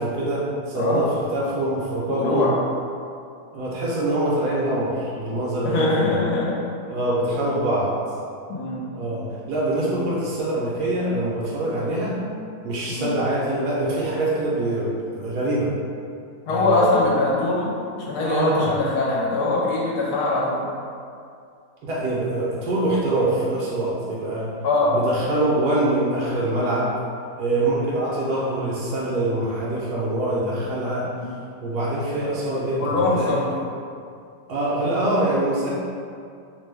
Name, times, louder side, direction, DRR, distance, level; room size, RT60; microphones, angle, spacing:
voice 1, 0.0-2.5 3.5-6.2 6.9-7.9 8.9-9.2 9.5-12.2 12.6-15.7 16.5-17.0 18.2-18.7 21.8-24.5 24.9-26.9 27.4-31.1 31.6-33.4 34.5-35.7, right 1 dB, 75° right, -6 dB, 1.1 m, -24 dB
voice 2, 2.1-2.5 5.6-6.6 8.5-8.8 12.9-13.1 16.5-17.7 18.0-20.7 24.6-25.0 27.6-27.7 31.0-31.3 32.8-33.5, left 2 dB, 75° left, -5 dB, 1.0 m, -22 dB
2.9 x 2.1 x 3.2 m, 2.4 s
omnidirectional pair, 1.8 m